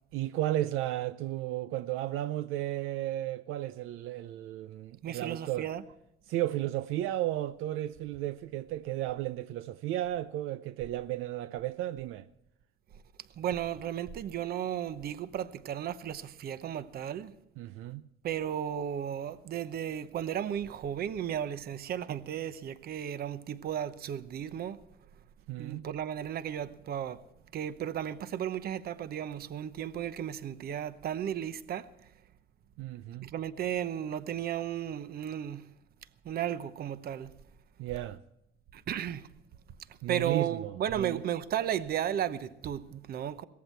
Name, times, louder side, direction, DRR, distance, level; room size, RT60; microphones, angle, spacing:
voice 1, 0.1-5.7 6.3-12.3 17.6-18.0 25.5-25.9 32.8-33.3 37.8-38.2 40.0-41.2, right 14 dB, 70° right, 0.5 m, -34 dB
voice 2, 5.0-5.9 13.4-17.3 18.2-24.8 25.6-27.2 27.5-31.9 33.2-35.7 36.2-37.3 38.7-39.3 40.1-43.4, right 10 dB, 45° right, 0.9 m, -34 dB
18.0 x 14.5 x 4.5 m
cardioid pair, 135°, 21 cm